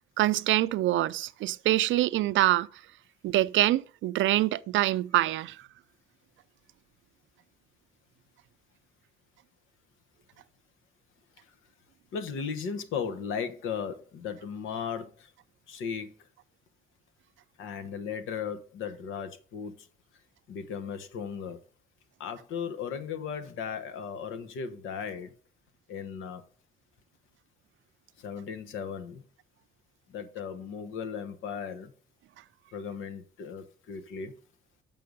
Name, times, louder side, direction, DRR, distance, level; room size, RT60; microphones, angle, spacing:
voice 1, 0.2-2.7 3.2-5.6, right 15 dB, 75° right, 0.5 m, -25 dB
voice 2, 12.1-15.3 15.7-16.1 17.6-19.7 20.5-21.6 22.2-25.3 25.9-26.4 28.2-29.2 30.1-31.9 32.7-34.3, left 6 dB, 85° left, 1.1 m, -36 dB
7.7 x 5.5 x 5.3 m
cardioid pair, 90°, 20 cm